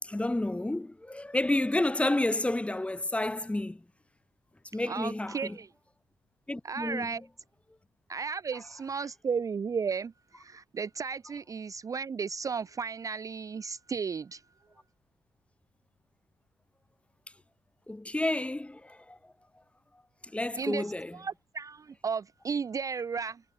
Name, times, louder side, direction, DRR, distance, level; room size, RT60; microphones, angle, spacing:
voice 1, 0.0-3.8 4.7-5.6 6.5-7.2 17.9-19.3 20.3-21.2, left 1 dB, 10° left, 2.0 m, -30 dB
voice 2, 4.9-5.7 6.6-7.2 8.1-14.4 20.6-20.9 21.1-23.4, right 5 dB, 35° right, 0.4 m, -34 dB
cardioid pair, 75°, 10 cm